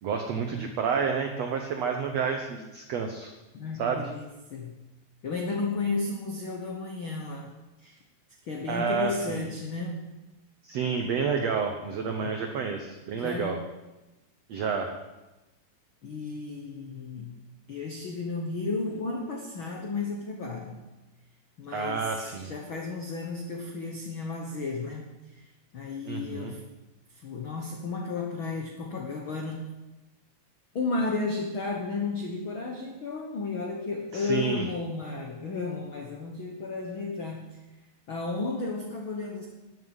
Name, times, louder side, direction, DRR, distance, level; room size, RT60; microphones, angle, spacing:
voice 1, 0.0-3.3 3.8-4.1 8.7-9.4 10.6-13.6 14.5-14.9 21.7-22.5 26.1-26.5 34.1-34.7, right 6 dB, 85° right, 4 dB, 1.4 m, -29 dB
voice 2, 3.5-4.8 5.2-7.5 7.8-8.0 8.4-10.0 12.2-12.3 13.1-13.5 16.0-17.4 17.7-20.8 21.6-25.4 25.7-26.6 27.1-29.6 30.7-37.6 38.1-39.5, left 3 dB, 85° left, 2 dB, 1.1 m, -33 dB
13.5 x 7.6 x 9.6 m, 1.1 s
omnidirectional pair, 4.5 m